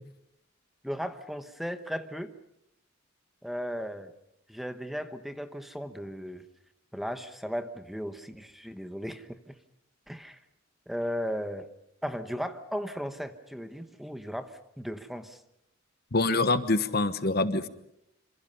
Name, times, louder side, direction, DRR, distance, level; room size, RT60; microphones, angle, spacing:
voice 1, 0.8-2.3 3.4-4.1 4.5-6.4 6.9-9.5 10.1-10.4 10.9-11.7 12.0-15.4, equal, ahead, 8 dB, 1.1 m, -36 dB
voice 2, 16.1-17.7, left 2 dB, 50° left, 11 dB, 1.2 m, -25 dB
27.0 x 27.0 x 5.6 m, 0.79 s
head